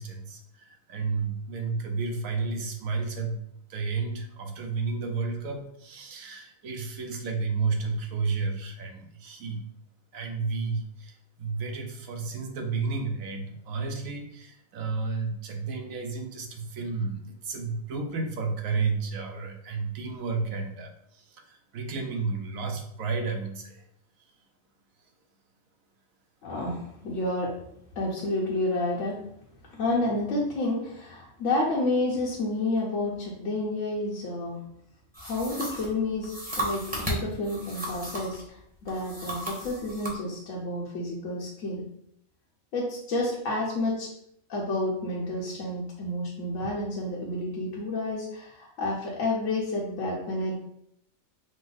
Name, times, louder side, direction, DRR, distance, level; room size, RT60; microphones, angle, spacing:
voice 1, 0.0-3.4 3.7-9.6 10.1-23.8 24.2-24.3 25.0-25.1, right 4 dB, 75° right, 3 dB, 1.1 m, -32 dB
voice 2, 26.4-27.6 27.9-29.2 29.7-34.6 35.2-41.9 42.7-44.1 44.5-50.5, left 2 dB, 65° left, -4 dB, 1.1 m, -30 dB
sound 1, 35.1-38.4 38.9-40.2, right 1 dB, 5° right, 1.0 m, -35 dB
5.1 x 2.0 x 3.8 m, 0.71 s
omnidirectional pair, 1.5 m